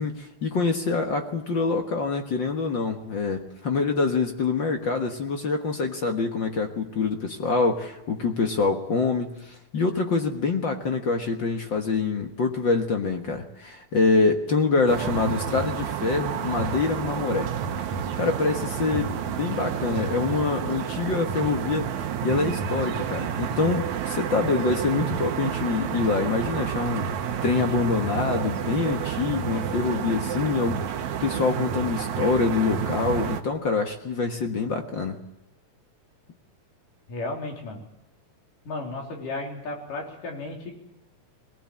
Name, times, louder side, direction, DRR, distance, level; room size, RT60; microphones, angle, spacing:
voice 1, 0.0-17.5 18.1-21.9 22.2-35.2, left 4 dB, 50° left, 4 dB, 1.6 m, -25 dB
sound 1, 14.9-33.4, right 8 dB, 65° right, 2.4 m, -30 dB
voice 2, 37.1-37.9 38.7-40.8, left 2 dB, 85° left, 0 dB, 5.3 m, -34 dB
21.0 x 20.0 x 8.7 m, 0.88 s
omnidirectional pair, 3.7 m